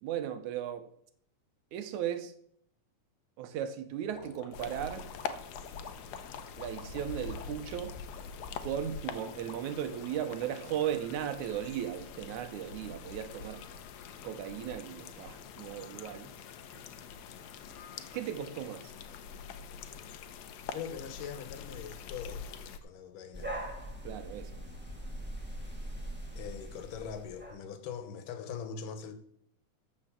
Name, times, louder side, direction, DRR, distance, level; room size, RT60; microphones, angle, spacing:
voice 1, 0.0-0.9 1.7-2.3 3.4-5.1 6.6-8.0 8.6-13.6 14.2-16.3 18.1-18.9 24.0-24.6, right 10 dB, 75° right, 2.2 m, -36 dB
sound 1, 4.1-11.4, left 6 dB, 55° left, 2.0 m, -50 dB
Lake King William, 4.5-22.8, left 6 dB, 70° left, 1.9 m, -44 dB
voice 2, 20.7-23.6 26.4-29.1, left 7 dB, 85° left, 2.8 m, -42 dB
sound 2, 23.3-27.6, right 1 dB, 5° right, 1.7 m, -41 dB
12.5 x 5.4 x 7.4 m
omnidirectional pair, 3.6 m